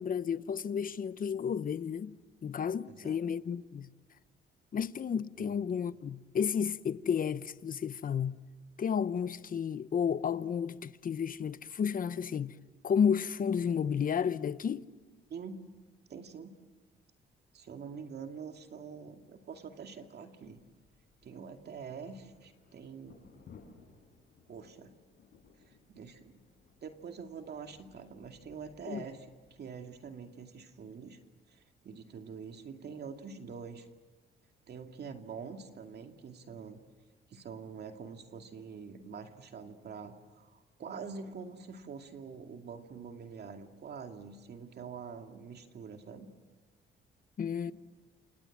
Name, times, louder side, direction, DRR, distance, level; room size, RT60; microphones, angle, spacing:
voice 1, 0.0-2.1 2.4-3.9 4.7-8.4 8.8-12.5 12.8-14.8 28.9-29.0 47.4-47.7, left 7 dB, 45° left, 0.9 m, -32 dB
voice 2, 2.9-3.2 5.4-5.6 15.3-15.6 16.1-16.5 17.5-20.6 21.2-23.2 24.5-24.9 25.6-26.4 26.8-31.2 31.5-33.9 34.7-36.8 37.3-46.3, right 6 dB, 55° right, 2.3 m, -45 dB
sound 1, 20.4-30.1, left 5 dB, 60° left, 6.8 m, -61 dB
28.0 x 28.0 x 7.5 m
cardioid pair, 90°, 20 cm